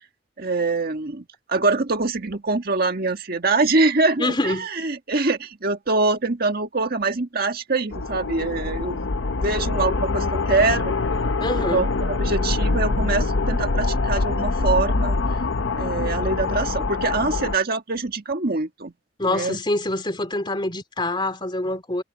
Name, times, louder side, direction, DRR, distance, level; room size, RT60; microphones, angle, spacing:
voice 1, 0.4-9.0 9.4-10.9 11.5-15.2 15.8-18.9 19.3-19.6, right 3 dB, 50° right, 1.7 m, -24 dB
voice 2, 4.2-4.7 11.4-11.8 19.2-22.0, left 2 dB, 25° left, 2.9 m, -25 dB
sound 1, 7.9-17.6, left 3 dB, 80° left, 0.9 m, -24 dB
head